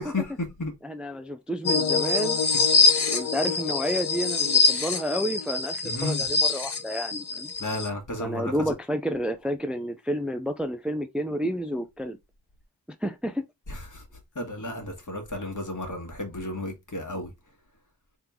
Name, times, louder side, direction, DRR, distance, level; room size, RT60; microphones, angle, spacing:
voice 1, 0.0-0.7 3.0-3.2 5.8-6.3 7.6-8.5 13.7-14.0 14.3-17.3, left 2 dB, 50° left, 1.5 m, -33 dB
voice 2, 0.8-2.4 3.1-7.5 8.2-12.2 13.0-13.4, equal, 5° right, 0.5 m, -30 dB
sound 1, 1.7-7.9, left 4 dB, 75° left, 0.8 m, -24 dB
3.6 x 3.0 x 3.5 m
wide cardioid pair, 40°, 39 cm